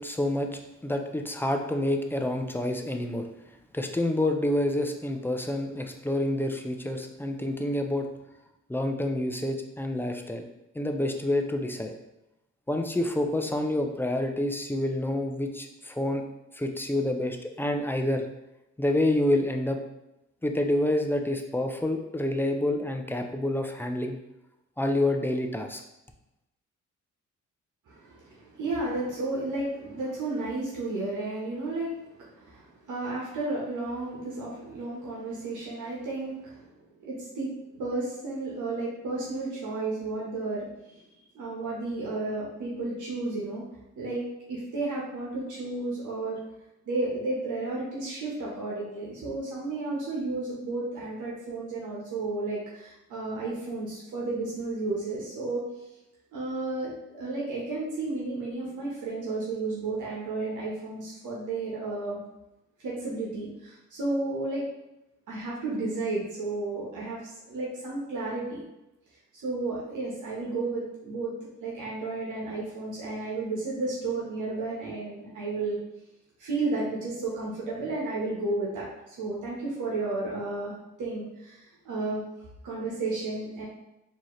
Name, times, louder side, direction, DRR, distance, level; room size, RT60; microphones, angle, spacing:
voice 1, 0.0-3.3 3.7-8.1 8.7-10.4 10.7-11.9 12.7-16.2 16.5-18.3 18.8-19.8 20.4-24.2 24.8-25.8, left 1 dB, 5° left, 4 dB, 0.5 m, -28 dB
voice 2, 27.9-36.7 37.0-41.0 41.3-43.6 44.0-44.2 44.5-46.4 46.9-55.6 56.3-62.2 62.8-64.7 65.3-68.6 69.4-71.3 71.6-75.8 76.4-80.7 81.0-82.2 82.6-83.7, right 2 dB, 75° right, -5 dB, 1.2 m, -32 dB
4.5 x 2.9 x 3.1 m, 0.92 s
cardioid pair, 80°, 31 cm